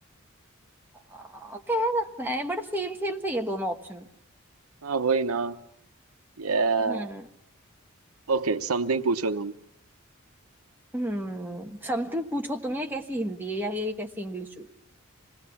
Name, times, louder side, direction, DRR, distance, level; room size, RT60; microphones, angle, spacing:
voice 1, 1.1-4.1 6.8-7.3 10.9-14.7, equal, 10° right, 2 dB, 1.3 m, -31 dB
voice 2, 4.8-5.6 6.4-7.1 8.3-9.5, right 4 dB, 85° right, 9 dB, 0.9 m, -25 dB
26.5 x 19.0 x 7.2 m, 0.81 s
head